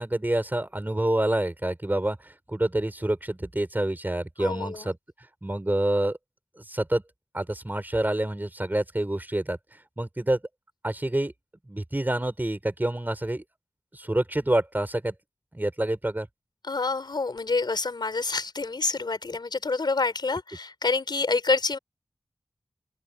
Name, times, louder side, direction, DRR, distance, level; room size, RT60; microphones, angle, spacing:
voice 1, 0.0-5.0 5.4-6.2 6.7-7.0 7.3-9.6 10.0-10.4 10.8-11.3 11.7-13.4 13.9-15.1 15.5-16.3, right 1 dB, 25° right, 5.8 m, -27 dB
voice 2, 4.4-4.9 16.6-21.8, left 3 dB, 75° left, 4.3 m, -27 dB
open air
wide cardioid pair, 70°, 8 cm